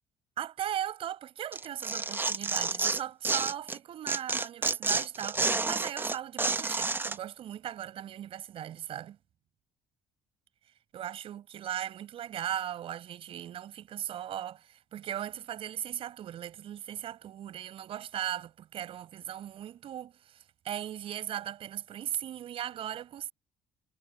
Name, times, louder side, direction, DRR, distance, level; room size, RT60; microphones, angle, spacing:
voice 1, 0.4-9.2 10.9-23.3, right 10 dB, 65° right, 4.9 m, -38 dB
Tearing, 1.5-3.8 4.1-7.2, right 3 dB, 20° right, 0.8 m, -30 dB
supercardioid pair, 80°, 10 cm